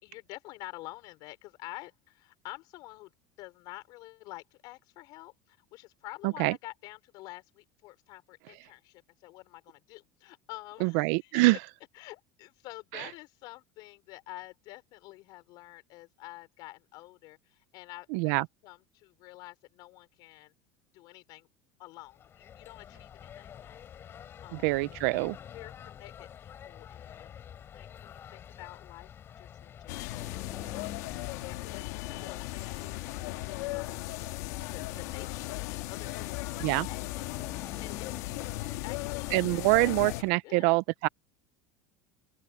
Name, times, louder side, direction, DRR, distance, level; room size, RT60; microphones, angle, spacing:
voice 1, 0.0-11.6 11.9-20.5 20.9-21.5 21.8-23.8 24.4-24.7 25.5-27.4 27.7-29.1 29.4-30.3 30.6-30.9 31.4-34.1 34.7-37.3 37.6-39.9 40.4-40.8, left 20 dB, 50° left, 4.9 m, -48 dB
voice 2, 6.2-6.6 10.8-11.6 12.9-13.1 18.1-18.5 24.5-25.4 36.6-36.9 39.3-41.1, right 24 dB, 65° right, 0.4 m, -25 dB
sound 1, 22.1-40.3, left 9 dB, 25° left, 3.8 m, -47 dB
sound 2, 29.9-40.2, left 20 dB, 75° left, 1.7 m, -37 dB
open air
cardioid pair, 165°, 9 cm